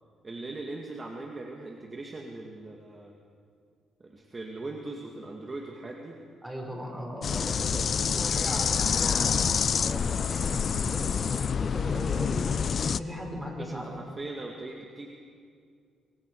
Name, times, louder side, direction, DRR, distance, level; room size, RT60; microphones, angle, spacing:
voice 1, 0.2-3.1 4.0-6.2 13.6-15.1, right 2 dB, 30° right, 1 dB, 2.4 m, -40 dB
voice 2, 6.4-9.5 9.8-13.9, equal, 10° right, 0 dB, 6.1 m, -38 dB
sound 1, 7.2-13.0, left 6 dB, 50° left, 0.6 m, -27 dB
27.5 x 24.0 x 5.1 m, 2.2 s
cardioid pair, 90°, 0 cm